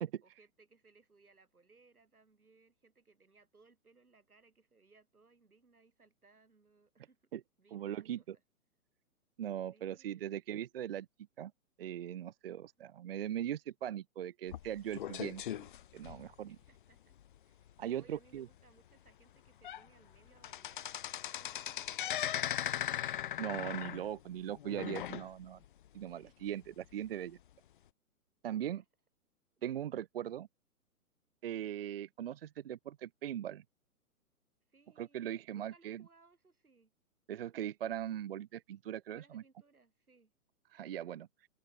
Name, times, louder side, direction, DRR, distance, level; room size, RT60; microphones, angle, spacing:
voice 1, 0.2-7.2 7.6-8.3 9.7-10.3 12.6-12.9 16.5-21.0 21.3-23.0 26.1-26.5 28.6-28.7 34.7-36.9 39.1-40.3, right 3 dB, 75° right, 6.2 m, -66 dB
voice 2, 7.7-8.4 9.4-11.1 11.4-11.5 11.8-15.7 15.9-16.6 17.8-18.5 23.4-25.6 25.9-27.4 28.4-28.8 29.6-30.5 31.4-33.6 35.0-36.0 37.3-39.4 40.7-41.3, right 10 dB, 40° right, 0.8 m, -40 dB
sound 1, 14.5-16.7 17.2-17.4 17.7-17.8 18.3-18.4 19.1-19.2 19.5-19.9 20.1-25.7 26.0-26.1 26.9-27.0, left 11 dB, 35° left, 0.6 m, -39 dB
figure-of-eight pair, 120°, 44 cm